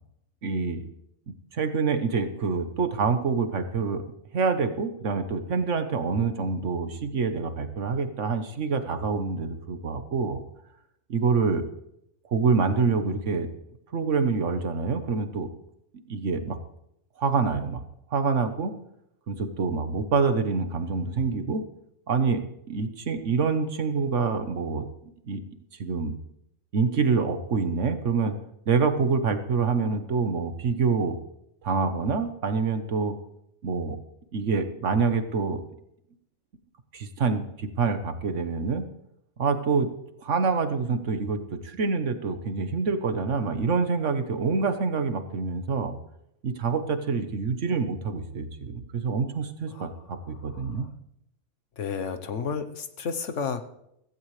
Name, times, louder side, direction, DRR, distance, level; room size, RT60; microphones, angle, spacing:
voice 1, 0.4-0.9 1.3-4.0 4.3-10.4 11.1-11.6 12.3-13.5 13.9-15.5 16.1-16.6 17.2-17.8 18.1-18.7 19.3-21.6 22.1-22.4 22.7-24.9 25.3-25.4 25.8-26.2 26.7-28.4 28.7-31.2 31.6-33.2 33.6-34.0 34.3-35.6 36.9-38.9 39.4-39.9 40.2-45.9 46.4-50.9, right 5 dB, 65° right, 9 dB, 1.4 m, -26 dB
voice 2, 50.5-50.9 51.8-53.7, left 6 dB, 70° left, 9 dB, 1.3 m, -32 dB
15.5 x 15.5 x 3.3 m, 0.78 s
omnidirectional pair, 1.4 m